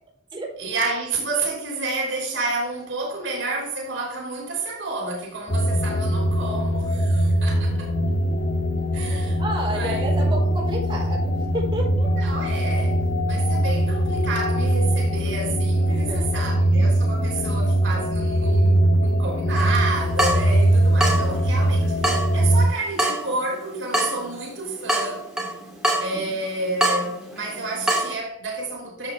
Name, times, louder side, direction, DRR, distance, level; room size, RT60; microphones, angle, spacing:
voice 1, 0.6-7.9 8.9-9.4 9.7-10.1 12.2-25.3 26.0-29.1, right 3 dB, 75° right, 3.3 m, -30 dB
sound 1, 5.5-22.7, right 1 dB, 90° left, 2.0 m, -21 dB
voice 2, 9.4-12.1 15.9-16.5 17.4-17.5 20.5-20.6, right 1 dB, 25° right, 4.2 m, -31 dB
Water tap faucet / Drip, 19.6-28.2, right 1 dB, 5° right, 1.8 m, -27 dB
11.5 x 7.2 x 3.4 m
head